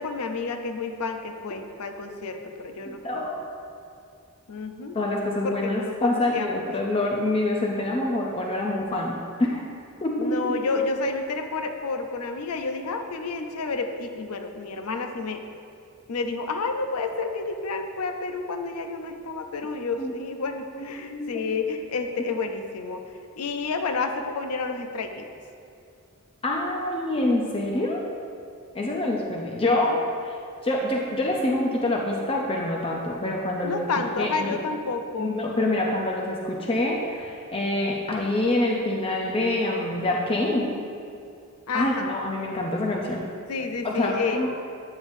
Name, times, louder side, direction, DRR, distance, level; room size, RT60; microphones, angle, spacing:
voice 1, 0.0-3.3 4.5-5.0 5.4-6.6 10.2-15.4 16.1-25.3 29.6-30.0 33.6-35.3 41.7-42.1 43.5-44.4, left 4 dB, 85° left, 6 dB, 0.6 m, -30 dB
voice 2, 2.9-3.4 4.9-9.6 10.0-10.5 20.0-20.1 20.7-21.5 26.4-28.0 28.7-29.9 30.2-30.4 30.6-33.9 34.2-34.6 35.2-40.7 41.7-43.3 43.8-44.5, left 1 dB, 25° left, -1 dB, 0.5 m, -26 dB
8.8 x 6.9 x 2.6 m, 2.5 s
head